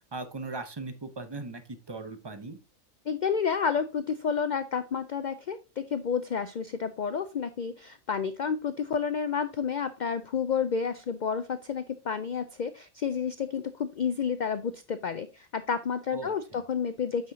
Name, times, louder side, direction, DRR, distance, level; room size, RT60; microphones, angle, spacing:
voice 1, 0.1-2.6 16.1-16.7, right 3 dB, 25° right, 8 dB, 0.6 m, -39 dB
voice 2, 3.1-17.3, left 6 dB, 80° left, 11 dB, 0.4 m, -30 dB
8.7 x 5.7 x 2.7 m, 0.31 s
omnidirectional pair, 1.4 m